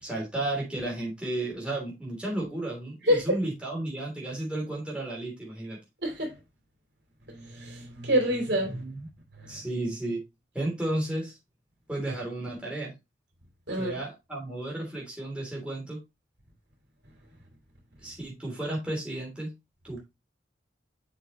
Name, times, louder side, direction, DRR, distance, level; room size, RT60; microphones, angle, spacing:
voice 1, 0.0-5.8 8.7-9.1 9.5-10.2 10.5-11.3 11.9-12.9 13.8-16.0 18.0-19.5 19.8-20.0, right 1 dB, 5° right, 3.1 m, -33 dB
voice 2, 3.1-3.4 6.0-6.4 7.3-8.8 9.4-9.6 13.7-14.0, equal, 70° right, 3.2 m, -27 dB
7.4 x 6.3 x 3.0 m
head